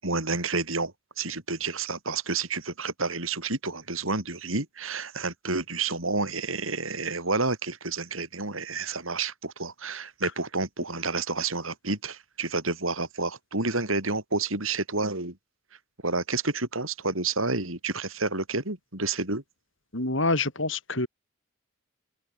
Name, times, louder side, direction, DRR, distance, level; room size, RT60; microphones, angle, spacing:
voice 1, 0.0-15.4 16.0-19.4, right 3 dB, 80° right, 6.6 m, -30 dB
voice 2, 19.9-21.1, left 2 dB, 65° left, 5.9 m, -26 dB
head